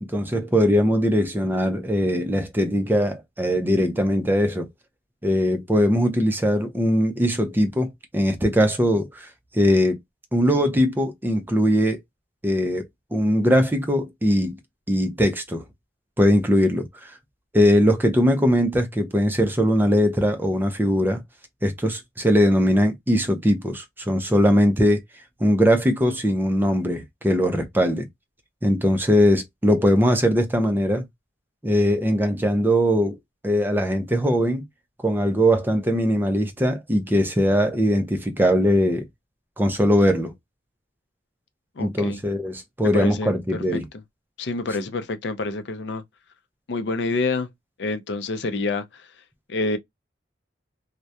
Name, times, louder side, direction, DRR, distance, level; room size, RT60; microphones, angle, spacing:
voice 1, 0.0-4.7 5.2-9.3 9.5-10.0 10.3-12.0 12.4-14.6 14.9-15.6 16.2-17.2 17.5-21.2 21.6-25.0 25.4-28.1 28.6-31.0 31.6-33.2 33.4-34.6 35.0-39.1 39.6-40.3 41.8-43.8, equal, 10° right, 0.4 m, -21 dB
voice 2, 41.8-42.2 42.9-43.3 43.7-43.8 44.4-46.0 46.7-47.5 47.8-49.1 49.5-49.8, left 3 dB, 65° left, 0.4 m, -27 dB
2.3 x 2.1 x 2.6 m
head